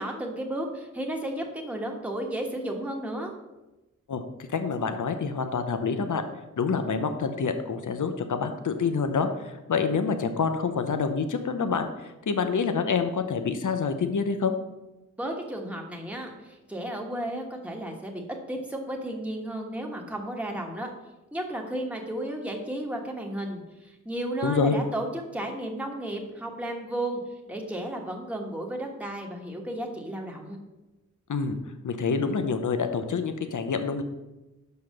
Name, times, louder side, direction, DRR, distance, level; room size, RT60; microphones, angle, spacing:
voice 1, 0.0-3.3 15.2-18.2 18.5-20.9 21.3-27.2 27.5-30.6, right 1 dB, 5° right, 0 dB, 1.3 m, -33 dB
voice 2, 4.5-6.2 6.6-14.5 24.4-24.8 31.3-31.6 31.8-34.0, left 5 dB, 80° left, 8 dB, 0.8 m, -27 dB
6.0 x 5.5 x 6.4 m, 1.0 s
wide cardioid pair, 80°, 30 cm